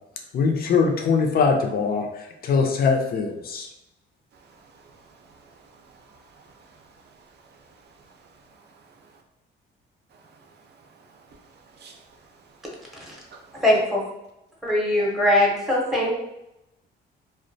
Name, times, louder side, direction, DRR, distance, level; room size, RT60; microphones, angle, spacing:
voice 1, 0.3-3.7, left 5 dB, 50° left, 3 dB, 0.5 m, -22 dB
voice 2, 4.5-7.1 8.0-8.2 8.6-8.8 10.1-10.4 11.0-11.1 11.7-12.0 13.1-13.5, right 4 dB, 55° right, 3 dB, 0.5 m, -53 dB
voice 3, 13.6-14.0 14.6-16.1, left 1 dB, ahead, -3 dB, 0.7 m, -21 dB
2.3 x 2.1 x 2.6 m, 0.87 s
cardioid pair, 90°, 20 cm